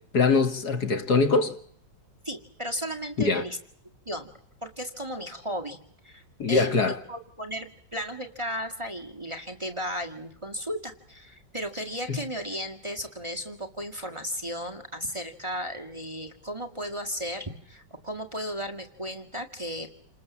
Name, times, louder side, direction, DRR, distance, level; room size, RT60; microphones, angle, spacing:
voice 1, 0.1-1.6 3.2-3.4 6.4-7.0, left 4 dB, 60° left, 2.3 m, -22 dB
voice 2, 2.2-3.6 4.1-4.3 4.6-5.8 6.0-6.2 6.5-19.9, equal, 15° right, 1.8 m, -35 dB
28.5 x 20.0 x 7.4 m
omnidirectional pair, 2.0 m